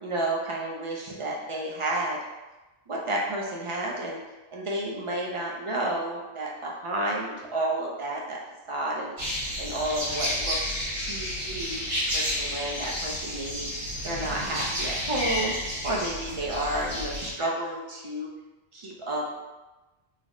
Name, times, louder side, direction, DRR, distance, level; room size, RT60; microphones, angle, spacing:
voice 1, 0.0-2.2 2.9-4.2 4.5-8.4 8.7-9.1 9.6-11.8 12.1-13.7 14.0-15.5 15.8-18.3 18.7-19.4, right 1 dB, 45° right, -3 dB, 0.4 m, -31 dB
sound 1, 9.2-17.3, equal, 75° right, 1.4 m, -31 dB
3.3 x 2.1 x 3.6 m, 1.1 s
omnidirectional pair, 1.2 m